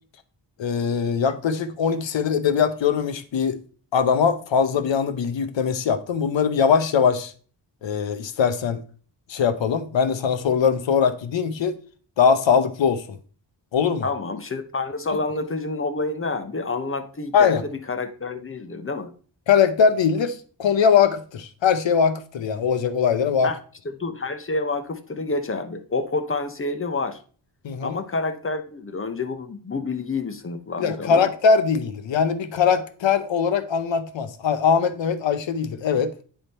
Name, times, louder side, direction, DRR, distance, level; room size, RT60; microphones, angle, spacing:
voice 1, 0.6-3.6 3.9-7.3 7.8-8.8 9.3-11.8 12.2-13.0 13.7-14.1 15.1-15.2 17.3-17.6 19.5-23.5 27.6-28.0 30.8-36.1, left 6 dB, 75° left, 0.9 m, -21 dB
voice 2, 14.0-19.1 23.4-23.6 24.0-27.2 27.8-31.2, left 3 dB, 30° left, 0.9 m, -28 dB
9.5 x 3.6 x 4.2 m
wide cardioid pair, 95°, 46 cm